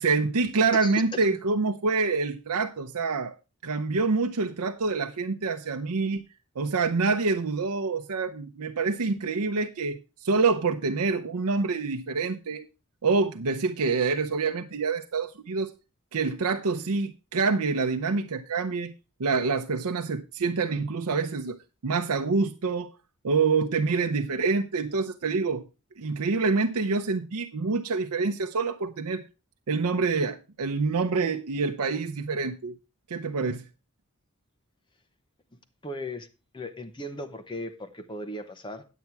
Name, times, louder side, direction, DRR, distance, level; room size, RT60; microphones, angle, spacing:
voice 1, 0.0-3.4 3.6-6.3 6.6-12.7 13.0-15.7 16.1-18.9 19.2-21.6 21.8-22.9 23.2-25.6 26.0-29.2 29.7-32.8 33.1-33.7, right 4 dB, 90° right, 0.7 m, -26 dB
voice 2, 0.7-1.3 35.8-36.3 36.5-38.8, left 1 dB, 20° left, 0.9 m, -37 dB
9.3 x 8.4 x 4.6 m
head